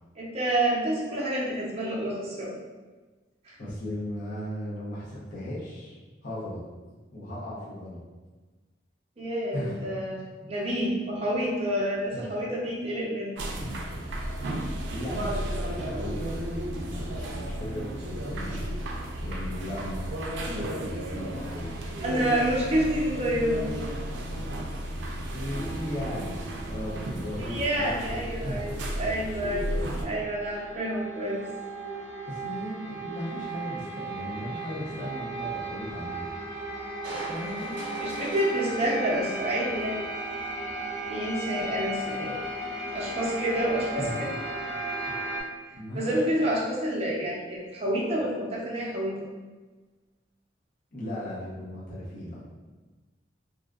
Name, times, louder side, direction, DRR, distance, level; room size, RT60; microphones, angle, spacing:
voice 1, 0.2-2.5 3.5-3.6 9.2-10.2 10.5-13.4 22.0-23.7 27.4-31.4 38.0-40.0 41.1-42.3 42.9-44.3 45.9-49.2, right 1 dB, 35° right, -4 dB, 0.6 m, -28 dB
voice 2, 3.6-6.0 6.2-6.6 7.1-8.0 9.5-9.8 12.1-12.2 13.6-14.0 14.9-20.1 20.5-21.7 25.3-28.8 32.2-36.3 37.3-37.9 44.0-44.2 45.0-45.1 45.7-46.1 50.9-52.4, left 1 dB, 50° left, -7 dB, 0.6 m, -37 dB
sound 1, 13.4-30.1, right 1 dB, 85° right, 0.4 m, -33 dB
sound 2, 25.5-45.4, right 2 dB, ahead, 1.0 m, -36 dB
Crushing, 37.0-40.4 40.9-41.0, right 1 dB, 70° right, 0.8 m, -42 dB
2.6 x 2.3 x 2.3 m, 1.3 s
head